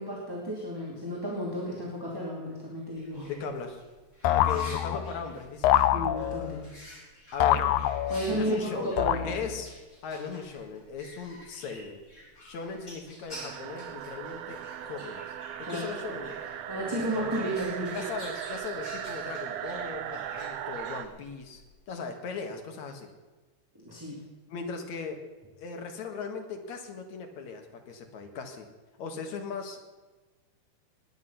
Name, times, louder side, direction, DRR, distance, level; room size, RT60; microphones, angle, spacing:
voice 1, 0.0-3.3 5.9-6.6 8.1-9.4 15.7-15.8 16.7-18.0 23.8-24.2, right 1 dB, 10° right, -4 dB, 2.3 m, -33 dB
sound 1, 2.9-21.7, equal, 25° left, 4.3 m, -50 dB
voice 2, 3.3-3.8 4.2-5.9 7.3-7.7 8.3-9.7 10.0-12.0 12.4-16.4 16.9-17.3 17.9-23.1 24.5-25.2 25.6-28.7 29.0-29.8, left 5 dB, 70° left, 4 dB, 2.9 m, -38 dB
sound 2, 4.2-5.2 5.6-6.6 7.4-8.4 9.0-9.7, left 12 dB, 85° left, 2.1 m, -26 dB
sound 3, 13.3-21.1, right 11 dB, 75° right, 1.8 m, -38 dB
19.5 x 9.9 x 5.8 m, 1.3 s
omnidirectional pair, 3.4 m